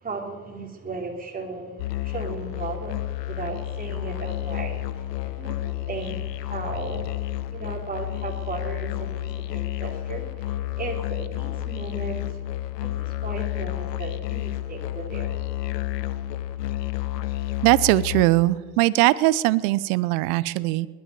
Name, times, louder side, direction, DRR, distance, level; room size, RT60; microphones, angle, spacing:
voice 1, 0.0-1.7 2.0-3.0 3.3-7.1 7.5-12.2 12.8-15.3, right 3 dB, 15° right, 0 dB, 3.7 m, -36 dB
Musical instrument, 1.8-18.2, left 14 dB, 85° left, 0.9 m, -30 dB
voice 2, 17.6-20.9, right 18 dB, 65° right, 18 dB, 0.8 m, -20 dB
20.0 x 10.0 x 7.0 m, 1.4 s
hypercardioid pair, 85°, 48 cm